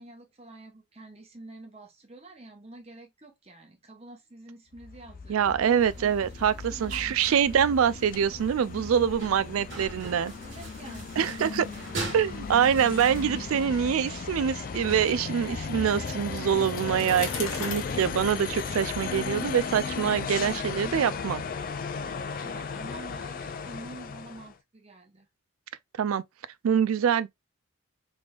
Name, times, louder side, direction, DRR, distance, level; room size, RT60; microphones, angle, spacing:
voice 1, 0.0-6.3 6.7-7.3 10.4-12.7 22.4-25.3, right 2 dB, 30° right, 0.9 m, -48 dB
sound 1, 4.7-24.5, left 5 dB, 40° left, 0.3 m, -36 dB
voice 2, 5.3-10.3 11.2-11.7 12.1-21.4 26.0-26.2 26.6-27.3, right 8 dB, 80° right, 0.4 m, -25 dB
sound 2, 5.8-13.7, right 2 dB, 60° right, 1.8 m, -42 dB
Bicycle, 15.9-19.7, left 5 dB, 75° left, 1.1 m, -40 dB
3.5 x 3.3 x 2.3 m
head